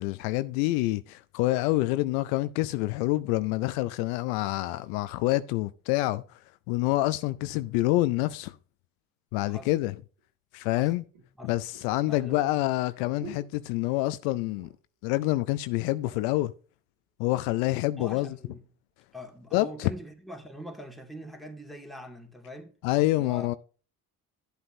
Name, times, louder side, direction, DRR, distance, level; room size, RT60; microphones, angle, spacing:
voice 1, 0.0-6.2 6.7-8.5 9.3-10.0 10.5-11.0 11.4-14.7 15.0-16.5 17.2-18.3 19.5-19.9 22.8-23.5, left 18 dB, 75° left, 0.5 m, -27 dB
sound 1, 10.2-10.3 11.1-14.2 14.5-15.0 15.3-15.4 15.7-16.4 17.1-17.9 18.5-18.7, right 6 dB, 80° right, 2.4 m, -51 dB
voice 2, 12.0-12.6 18.0-18.6 19.1-22.7 23.1-23.6, equal, ahead, 2.2 m, -43 dB
11.5 x 7.9 x 2.7 m
hypercardioid pair, 50°, 44 cm